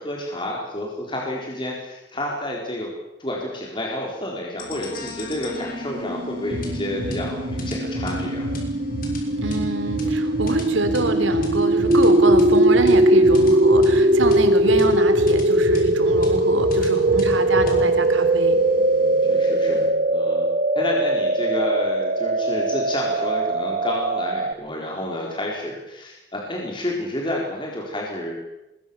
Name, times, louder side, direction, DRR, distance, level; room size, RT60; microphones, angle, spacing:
voice 1, 0.0-2.9 3.2-8.5 17.6-17.8 19.2-20.5 20.8-28.3, left 1 dB, 25° left, -1 dB, 4.2 m, -30 dB
sound 1, 4.6-20.0, equal, 45° left, 6.2 m, -33 dB
sound 2, 5.4-24.5, right 1 dB, 40° right, 1.3 m, -20 dB
voice 2, 9.4-18.5, right 2 dB, 80° right, 9 dB, 3.4 m, -26 dB
26.0 x 21.5 x 7.1 m, 0.96 s
head